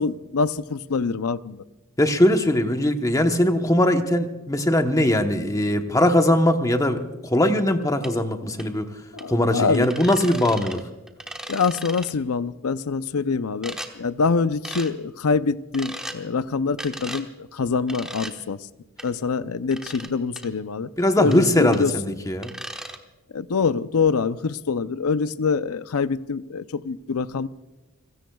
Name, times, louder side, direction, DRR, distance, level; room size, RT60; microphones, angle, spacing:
voice 1, 0.0-1.6 9.1-9.9 11.5-18.7 19.0-20.9 21.2-21.9 23.3-27.5, left 4 dB, 75° left, 14 dB, 0.6 m, -25 dB
voice 2, 2.0-8.9 9.3-10.8 21.0-22.5, left 1 dB, 15° left, 6 dB, 1.0 m, -20 dB
sound 1, 8.0-8.1 8.6-8.7 9.2-9.3 9.7-10.8 11.1-12.1 13.6-13.9 14.6-14.9 15.7-16.2 16.8-17.2 17.9-18.3 19.0-19.1 19.7-20.1 20.4-20.5 21.3-21.4 21.7-21.8 22.4-23.0, right 1 dB, 5° right, 1.2 m, -36 dB
30.0 x 16.5 x 2.3 m, 1.1 s
head